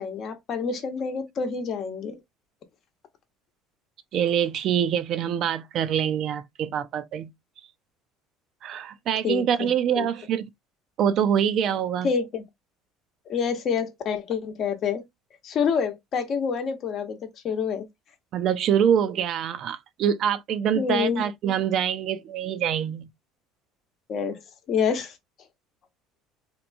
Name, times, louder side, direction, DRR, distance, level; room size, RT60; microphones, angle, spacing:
voice 1, 0.0-2.2 9.2-9.7 9.9-10.1 12.0-12.4 13.3-15.0 15.4-17.9 20.7-21.2 24.1-24.4 24.7-25.2, left 6 dB, 50° left, 0.8 m, -27 dB
voice 2, 4.1-7.3 8.6-10.5 11.0-12.1 18.3-23.1, right 9 dB, 55° right, 0.4 m, -25 dB
2.9 x 2.2 x 2.5 m
supercardioid pair, 85°, 0 cm